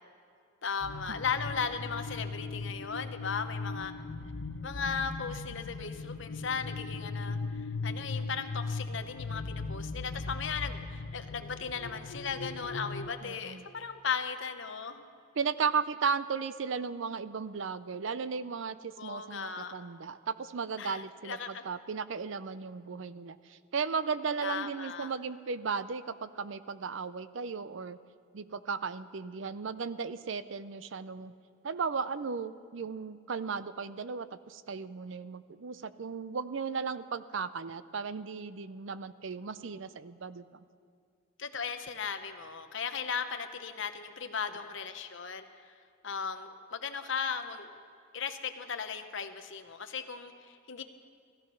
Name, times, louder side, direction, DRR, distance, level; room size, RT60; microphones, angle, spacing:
voice 1, 0.6-3.9 4.6-15.0 19.0-19.7 20.8-21.6 24.4-25.1 41.4-45.4 46.0-47.8 48.1-50.8, left 6 dB, 60° left, 7 dB, 0.9 m, -37 dB
sound 1, 0.8-13.1, left 3 dB, 85° left, 0.7 m, -38 dB
voice 2, 13.2-13.6 15.4-28.0 28.3-31.3 31.6-40.6, right 5 dB, 65° right, 14 dB, 0.5 m, -35 dB
17.5 x 14.0 x 5.6 m, 2.4 s
head